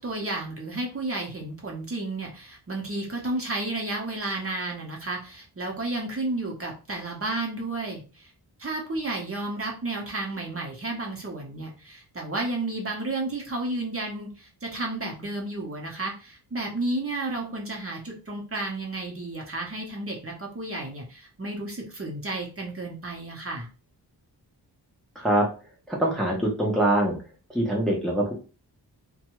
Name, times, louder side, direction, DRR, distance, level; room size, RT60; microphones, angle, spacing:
voice 1, 0.0-8.3 8.6-23.7, right 2 dB, 35° right, 0 dB, 0.9 m, -32 dB
voice 2, 25.2-25.5 25.9-27.2 27.5-28.3, right 1 dB, ahead, -2 dB, 0.7 m, -23 dB
2.6 x 2.3 x 3.0 m, 0.34 s
wide cardioid pair, 105°, 42 cm